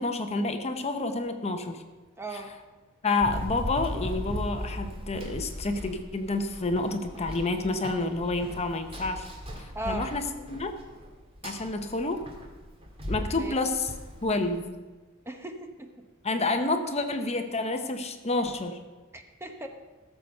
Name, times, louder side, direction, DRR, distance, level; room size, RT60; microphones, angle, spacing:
voice 1, 0.0-1.8 3.0-9.3 9.6-10.2 10.5-10.8 11.4-12.2 13.1-13.9 14.2-14.8 16.2-18.8, left 2 dB, 30° left, 7 dB, 0.8 m, -29 dB
voice 2, 2.2-2.5 9.7-10.1 13.3-13.5 15.3-15.9 19.1-19.7, right 1 dB, 10° right, 5 dB, 0.9 m, -37 dB
Run, 3.2-14.6, equal, 30° right, 1.9 m, -38 dB
15.5 x 6.9 x 6.6 m, 1.2 s
head